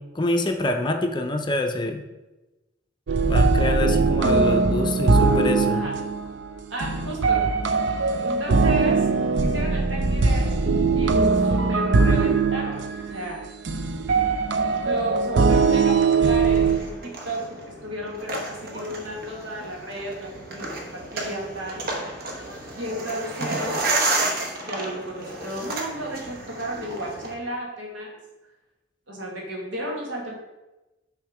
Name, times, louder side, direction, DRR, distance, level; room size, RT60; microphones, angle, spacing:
voice 1, 0.1-2.0 3.2-5.8, left 2 dB, 25° left, 4 dB, 0.5 m, -26 dB
sound 1, 3.1-16.8, right 4 dB, 70° right, 0.5 m, -21 dB
voice 2, 6.7-7.5 8.2-10.6 10.9-13.4 14.8-21.9 22.7-23.9 24.2-28.2 29.1-30.4, right 1 dB, 90° right, -2 dB, 1.7 m, -33 dB
sound 2, 16.5-27.3, right 2 dB, 55° right, 1.0 m, -31 dB
6.5 x 3.5 x 4.8 m, 1.1 s
head